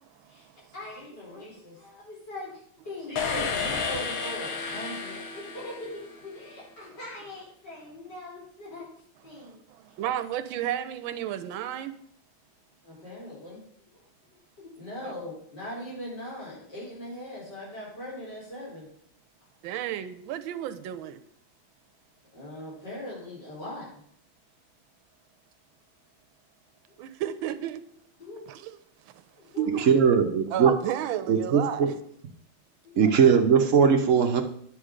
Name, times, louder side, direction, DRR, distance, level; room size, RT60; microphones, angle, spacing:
voice 1, 0.0-0.7 3.4-3.5 9.4-12.0 15.0-15.1 19.6-21.2 27.0-27.8 28.5-28.8 29.0-29.2 29.6-29.8 30.5-32.0, right 11 dB, 80° right, 10 dB, 1.4 m, -33 dB
voice 2, 0.7-8.9 9.2-9.6 12.8-18.9 22.3-24.0 26.9-27.0 28.2-28.5 29.3-31.3 32.8-33.8, left 1 dB, 55° left, -5 dB, 5.2 m, -41 dB
sound 1, 3.2-6.3, left 5 dB, 75° left, 1.9 m, -32 dB
voice 3, 29.7-30.7 31.3-31.9 33.0-34.4, right 6 dB, 55° right, 5 dB, 0.9 m, -20 dB
10.0 x 7.2 x 5.0 m, 0.67 s
omnidirectional pair, 2.3 m